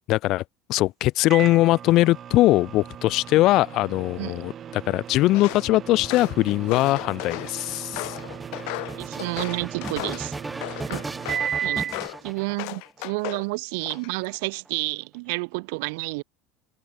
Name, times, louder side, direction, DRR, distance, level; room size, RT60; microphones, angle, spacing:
voice 1, 0.1-0.4 0.7-8.2, left 17 dB, 45° left, 2.3 m, -21 dB
Microwave oven, 1.3-12.1, right 9 dB, 25° right, 1.1 m, -36 dB
sound 1, 5.1-13.0 13.8-14.7, right 2 dB, 5° right, 6.0 m, -38 dB
Walk footsteps, 5.3-5.7 6.0-7.5 7.9-10.3 10.6-11.5 11.9-12.2 12.6-13.5 13.8-14.3, left 40 dB or more, 60° left, 6.1 m, -35 dB
voice 2, 9.0-10.3 10.8-11.0 11.6-11.9 12.2-16.2, right 29 dB, 70° right, 1.1 m, -30 dB
cardioid pair, 170°, 0 cm